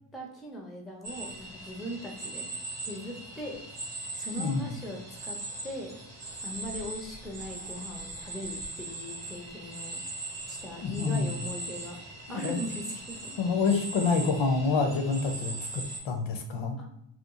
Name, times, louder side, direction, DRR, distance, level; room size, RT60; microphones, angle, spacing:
voice 1, 0.1-2.5 2.9-3.6 4.2-6.0 6.4-10.0 10.5-12.0 12.3-13.2 16.8-16.9, equal, ahead, 0 dB, 0.4 m, -40 dB
sound 1, 1.0-16.0, right 2 dB, 30° right, 0.7 m, -40 dB
voice 2, 4.3-4.7 10.8-11.4 12.3-12.6 13.4-16.8, left 4 dB, 70° left, 5 dB, 0.6 m, -28 dB
2.9 x 2.1 x 2.4 m, 0.77 s
wide cardioid pair, 130°, 49 cm